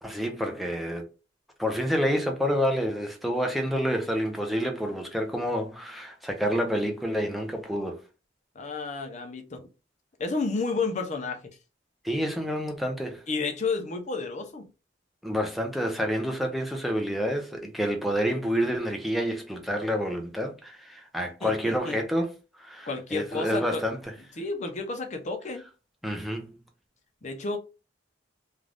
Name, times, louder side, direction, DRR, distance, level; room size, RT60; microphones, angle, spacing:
voice 1, 0.0-1.0 1.6-8.0 12.0-13.2 15.2-22.3 22.6-24.0 26.0-26.6, equal, ahead, 0.6 m, -28 dB
voice 2, 8.5-9.6 10.2-11.4 13.3-14.7 21.4-22.0 22.9-23.8 24.4-25.6 27.2-27.6, left 3 dB, 40° left, 0.6 m, -31 dB
2.5 x 2.4 x 3.3 m
head